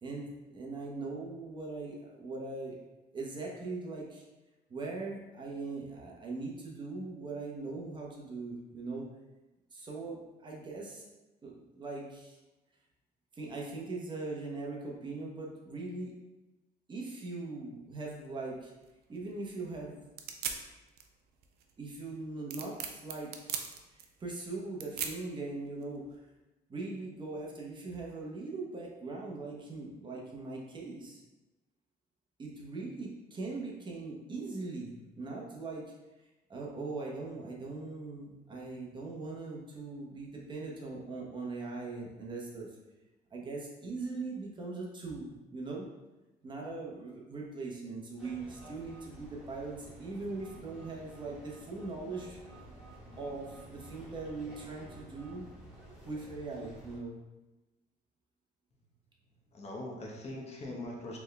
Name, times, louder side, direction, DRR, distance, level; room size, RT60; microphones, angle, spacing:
voice 1, 0.0-2.8 3.1-4.2 4.7-9.0 9.7-11.0 11.4-12.4 13.3-16.1 16.9-18.7 19.1-20.0 21.8-23.5 24.0-26.2 26.7-31.2 32.4-35.9 36.5-42.7 43.3-45.9 46.4-52.4 53.2-55.5 56.0-57.1, right 3 dB, 30° right, -2 dB, 0.9 m, -40 dB
sound 1, 18.1-26.2, right 7 dB, 70° right, 0.5 m, -43 dB
sound 2, 48.2-57.0, right 1 dB, 5° right, 1.4 m, -52 dB
sound 3, 49.6-55.5, equal, 20° left, 1.2 m, -59 dB
voice 2, 59.2-61.2, left 1 dB, 40° left, -2 dB, 0.9 m, -42 dB
4.1 x 3.4 x 2.2 m, 1.1 s
cardioid pair, 110°, 17 cm